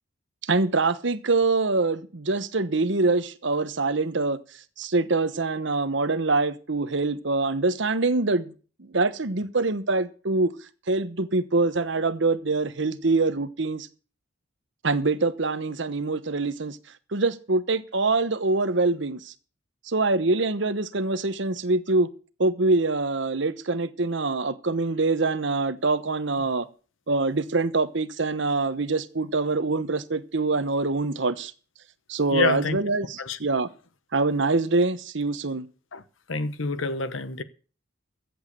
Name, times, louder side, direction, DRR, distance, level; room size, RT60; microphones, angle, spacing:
voice 1, 0.4-8.5 8.8-10.5 10.9-13.9 14.8-16.8 17.1-19.3 19.8-22.1 22.4-26.7 27.1-31.5 32.1-33.7 34.1-35.7, right 3 dB, 65° right, 1.0 m, -24 dB
voice 2, 32.3-32.8 33.2-33.4 35.9-36.0 36.3-37.4, left 4 dB, 75° left, 1.0 m, -28 dB
15.0 x 8.0 x 6.7 m
head